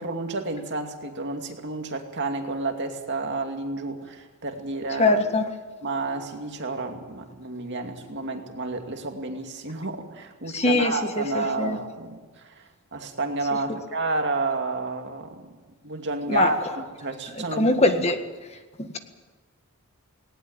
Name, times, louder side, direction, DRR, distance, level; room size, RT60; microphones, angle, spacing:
voice 1, 0.0-5.2 5.8-15.5 15.8-17.8, right 3 dB, 55° right, 4 dB, 2.5 m, -30 dB
voice 2, 5.0-5.4 10.5-11.8 16.3-16.5 17.6-18.2 18.8-19.0, left 2 dB, 30° left, 7 dB, 1.6 m, -22 dB
19.0 x 19.0 x 9.0 m, 1.3 s
head